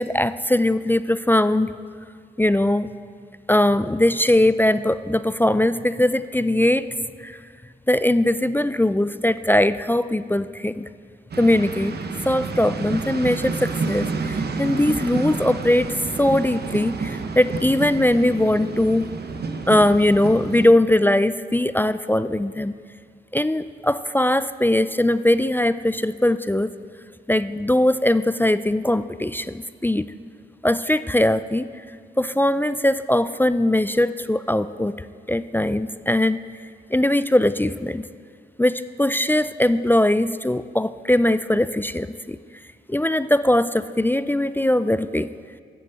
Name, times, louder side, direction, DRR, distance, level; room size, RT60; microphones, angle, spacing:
voice 1, 0.0-1.7 2.4-2.9 3.5-6.9 7.2-7.4 7.9-10.9 11.4-11.9 12.3-15.9 16.2-19.1 19.7-22.7 23.3-26.7 27.3-30.1 30.6-31.7 32.2-34.9 35.3-36.4 36.9-38.0 38.6-42.4 42.9-45.3, left 1 dB, 10° left, 14 dB, 0.4 m, -20 dB
sound 1, 11.3-20.7, right 4 dB, 60° right, 0.9 m, -29 dB
10.0 x 7.6 x 6.8 m, 2.1 s
supercardioid pair, 45°, 19 cm